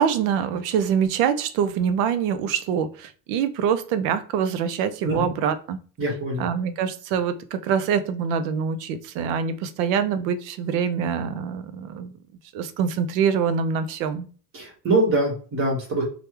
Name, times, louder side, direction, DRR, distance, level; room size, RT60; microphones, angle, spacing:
voice 1, 0.0-5.8 6.4-12.1 12.5-14.3, right 7 dB, 80° right, 0.6 m, -25 dB
voice 2, 6.0-6.5 14.5-16.0, right 2 dB, 35° right, 1.4 m, -23 dB
3.3 x 2.3 x 3.0 m
cardioid pair, 160°, 40 cm